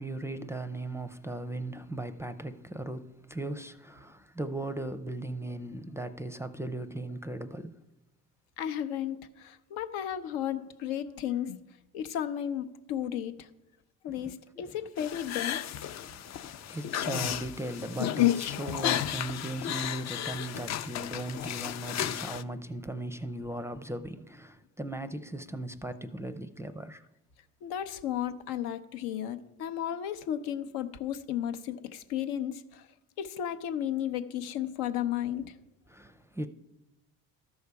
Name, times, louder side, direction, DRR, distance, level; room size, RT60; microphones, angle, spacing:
voice 1, 0.0-7.8 14.1-14.6 16.0-27.0 35.9-36.5, right 1 dB, 5° right, 0.4 m, -38 dB
voice 2, 8.6-11.6 11.9-13.5 14.0-15.7 27.6-32.9 33.2-35.5, left 10 dB, 85° left, 0.8 m, -34 dB
sound 1, 15.0-22.4, left 12 dB, 45° left, 0.5 m, -32 dB
13.0 x 5.6 x 4.7 m
supercardioid pair, 85°, 37 cm